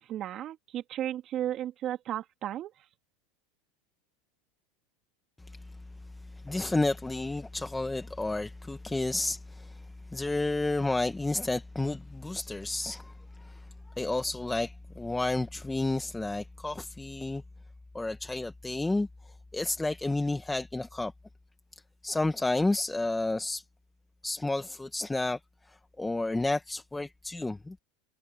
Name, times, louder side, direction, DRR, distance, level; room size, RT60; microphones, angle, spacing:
voice 1, 0.1-2.7, right 11 dB, 45° right, 3.1 m, -34 dB
voice 2, 6.3-9.8 10.1-13.7 14.0-17.4 17.9-21.1 21.7-23.6 24.2-25.4 25.7-27.8, left 2 dB, 10° left, 1.3 m, -31 dB
supercardioid pair, 110°, 0 cm